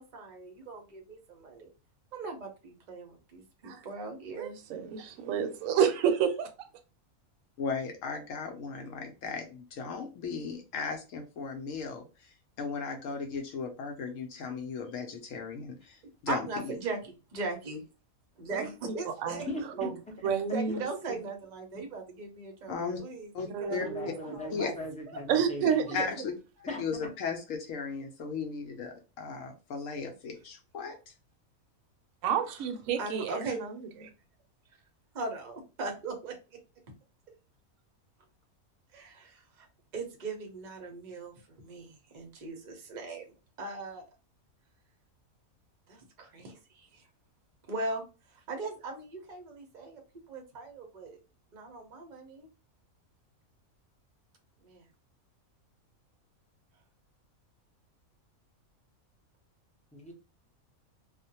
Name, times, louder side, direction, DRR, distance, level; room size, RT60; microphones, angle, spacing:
voice 1, 0.0-1.7 2.1-4.5 16.3-17.8 18.4-19.5 20.5-23.3 23.6-24.7 25.1-25.2 33.0-33.6 35.1-36.6 38.9-39.7 39.9-43.3 43.6-44.1 45.9-47.0 47.7-48.0 48.3-51.2 51.5-52.5 54.6-54.8, right 3 dB, 45° right, 0.6 m, -39 dB
voice 2, 4.4-6.5 18.8-18.9 19.2-19.4 19.8-19.9 20.2-20.8 23.5-24.1 25.3-26.1 32.2-33.7, right 7 dB, 70° right, 0.9 m, -29 dB
voice 3, 7.6-16.8 22.7-23.0 23.3-24.1 24.5-24.7 25.9-26.3 26.8-31.1, left 5 dB, 70° left, 0.9 m, -36 dB
voice 4, 19.5-19.9 20.6-20.7 23.8-26.0 26.6-26.8 59.9-60.1, left 1 dB, 10° left, 0.4 m, -39 dB
2.4 x 2.1 x 2.7 m
omnidirectional pair, 1.5 m